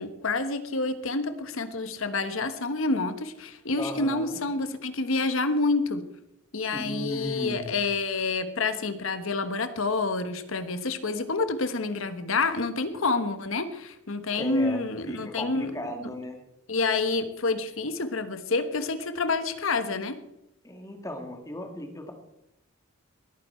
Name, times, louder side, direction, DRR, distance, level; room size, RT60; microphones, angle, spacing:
voice 1, 0.0-6.0 6.5-15.7 16.7-20.2, left 3 dB, 70° left, 11 dB, 1.2 m, -28 dB
voice 2, 3.8-4.4 6.7-7.8 14.4-16.4 20.6-22.1, left 1 dB, 15° left, 4 dB, 1.9 m, -36 dB
20.0 x 9.3 x 4.4 m, 0.84 s
head